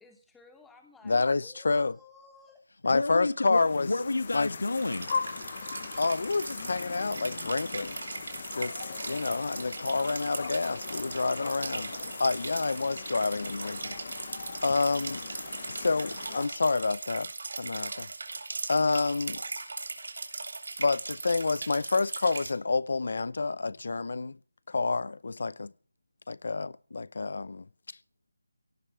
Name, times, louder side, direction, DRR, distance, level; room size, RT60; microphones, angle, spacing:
voice 1, 0.0-2.6, left 4 dB, ahead, 1.0 m, -56 dB
voice 2, 1.0-1.9 2.8-3.9 4.3-4.5 6.0-8.0 8.6-11.9 12.2-15.2 15.7-17.3 17.6-18.4 18.7-19.4 20.8-24.4 24.7-25.7 26.3-27.7, left 3 dB, 40° left, 0.7 m, -29 dB
voice 3, 2.9-5.1, left 2 dB, 80° left, 1.9 m, -30 dB
sound 1, 3.5-16.5, left 5 dB, 25° left, 1.1 m, -40 dB
sound 2, 4.8-22.5, right 3 dB, 45° right, 3.1 m, -39 dB
17.5 x 12.5 x 6.1 m
figure-of-eight pair, 180°, 0 cm